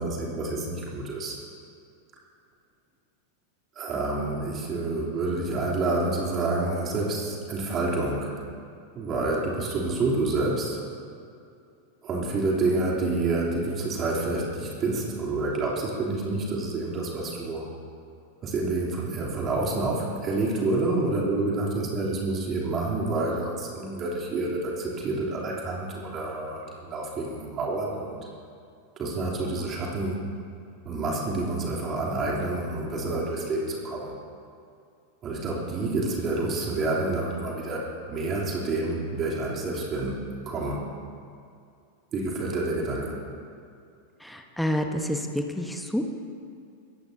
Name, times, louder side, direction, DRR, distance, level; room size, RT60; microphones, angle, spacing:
voice 1, 0.0-1.4 3.7-8.4 8.9-10.8 12.0-17.7 18.4-28.3 29.0-30.2 30.8-34.1 35.2-40.2 40.4-40.9 42.1-43.2, right 2 dB, 30° right, -4 dB, 3.3 m, -28 dB
voice 2, 44.2-46.1, equal, ahead, 4 dB, 1.2 m, -28 dB
24.0 x 17.0 x 2.9 m, 2.5 s
figure-of-eight pair, 90°, 0 cm